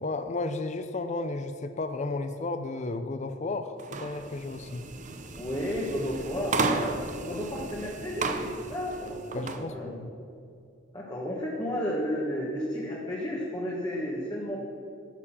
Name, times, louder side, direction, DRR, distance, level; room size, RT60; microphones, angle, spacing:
voice 1, 0.0-4.8 9.3-10.1, left 2 dB, 35° left, 9 dB, 0.5 m, -33 dB
sound 1, 3.8-9.6, right 3 dB, 40° right, 0.7 m, -34 dB
voice 2, 5.4-9.9 10.9-14.6, equal, 20° left, -4 dB, 1.4 m, -32 dB
11.5 x 7.0 x 7.3 m, 2.6 s
head